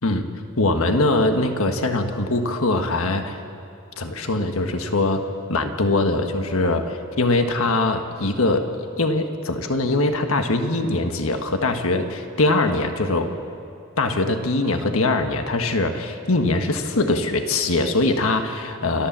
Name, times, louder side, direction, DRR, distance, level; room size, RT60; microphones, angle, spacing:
voice 1, 0.6-3.4 4.0-13.3 14.0-19.1, left 2 dB, 85° left, 6 dB, 1.5 m, -22 dB
29.0 x 13.5 x 7.4 m, 2.7 s
head